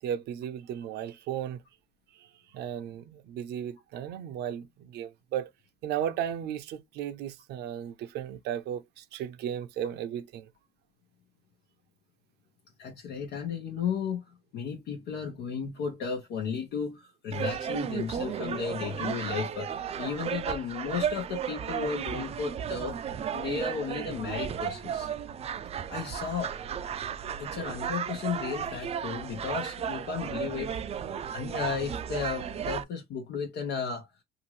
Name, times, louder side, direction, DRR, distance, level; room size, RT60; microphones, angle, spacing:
voice 1, 0.0-1.6 2.5-5.5 5.8-10.5 18.7-18.8, right 9 dB, 80° right, 0.6 m, -35 dB
voice 2, 12.8-14.2 14.5-23.0 23.3-25.1 25.9-26.5 27.4-30.7 31.3-34.1, left 6 dB, 80° left, 0.9 m, -34 dB
sound 1, 17.3-32.8, right 8 dB, 40° right, 0.4 m, -34 dB
2.7 x 2.5 x 3.0 m
cardioid pair, 110°, 17 cm